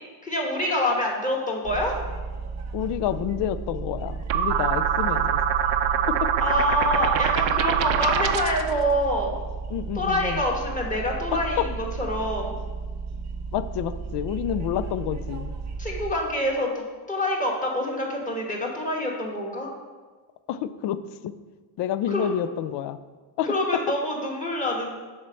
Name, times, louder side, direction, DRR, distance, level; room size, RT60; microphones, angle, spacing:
voice 1, 0.2-2.0 6.4-9.3 9.9-12.5 15.8-19.7 22.1-22.3 23.4-24.9, left 1 dB, 15° left, -2 dB, 1.2 m, -26 dB
sound 1, 1.6-16.1, right 4 dB, 35° right, 0.8 m, -34 dB
voice 2, 2.7-5.4 9.7-10.4 11.3-11.4 13.5-15.5 20.5-21.0 21.2-21.3 21.8-23.0 23.4-23.5, left 10 dB, 60° left, 13 dB, 0.5 m, -29 dB
sound 2, 4.3-8.7, right 9 dB, 75° right, 0.6 m, -24 dB
7.2 x 4.5 x 6.2 m, 1.4 s
cardioid pair, 160°, 46 cm